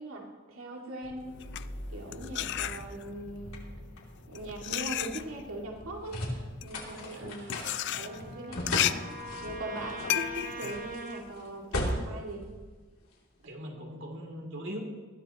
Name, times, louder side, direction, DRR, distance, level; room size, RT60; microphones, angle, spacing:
voice 1, 0.0-1.3 1.9-3.6 4.3-6.3 6.6-9.0 9.4-12.5, right 1 dB, 80° right, -1 dB, 2.3 m, -40 dB
sound 1, 1.0-13.4, left 1 dB, 85° left, 3.0 m, -39 dB
sound 2, 1.3-3.3 4.0-11.9, left 12 dB, 55° left, 0.4 m, -34 dB
Trumpet, 6.7-11.3, right 2 dB, 40° right, 1.1 m, -44 dB
voice 2, 6.9-7.3 13.4-14.8, equal, 60° right, 0 dB, 3.0 m, -41 dB
20.0 x 13.5 x 3.0 m, 1.4 s
head